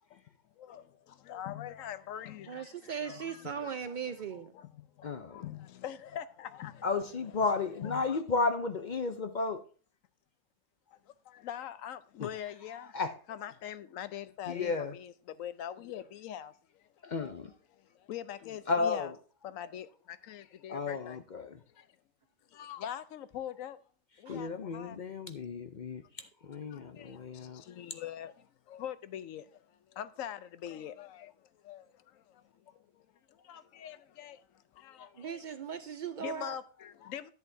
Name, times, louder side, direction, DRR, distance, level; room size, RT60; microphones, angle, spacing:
voice 1, 0.6-3.8 4.5-6.9 7.5-8.2 10.9-13.0 13.3-17.1 17.7-19.1 19.4-21.2 21.8-21.9 22.5-23.8 24.2-25.0 26.7-35.4 36.2-37.3, left 10 dB, 80° left, 1.0 m, -44 dB
voice 2, 2.5-4.5 24.3-24.4 35.2-36.6, right 7 dB, 80° right, 0.4 m, -38 dB
voice 3, 5.0-5.4 6.8-9.6 12.2-12.3 12.8-13.1 14.5-14.9 17.0-17.5 18.7-19.2 20.7-21.6 24.3-27.6, left 4 dB, 50° left, 0.5 m, -33 dB
10.5 x 8.2 x 2.6 m
omnidirectional pair, 1.4 m